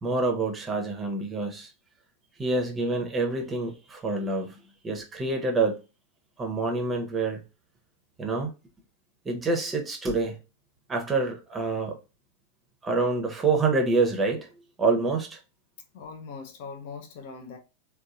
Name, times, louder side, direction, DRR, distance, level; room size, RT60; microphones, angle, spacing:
voice 1, 0.0-1.7 2.4-4.6 4.8-5.8 6.4-7.4 8.2-8.5 9.2-10.4 10.9-12.0 12.8-14.5 14.8-15.4, right 3 dB, 15° right, 0.7 m, -26 dB
voice 2, 15.9-17.6, left 5 dB, 50° left, 0.5 m, -41 dB
3.6 x 2.3 x 2.4 m
figure-of-eight pair, 90°, 0 cm